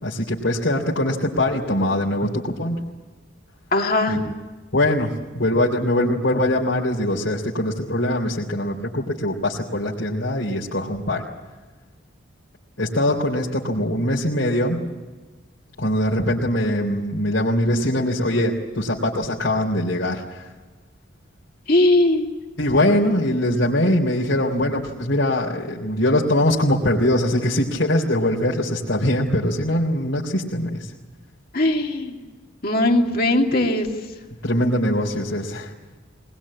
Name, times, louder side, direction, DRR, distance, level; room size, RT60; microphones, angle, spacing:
voice 1, 0.0-2.8 4.1-4.2 4.7-11.2 12.8-14.8 15.8-20.5 22.6-30.9 34.4-35.7, left 1 dB, 70° left, -4 dB, 3.4 m, -22 dB
voice 2, 3.7-4.2 21.7-22.3 31.5-32.2 32.6-33.9, left 2 dB, 50° left, 2 dB, 2.6 m, -19 dB
21.5 x 20.5 x 8.7 m, 1.3 s
head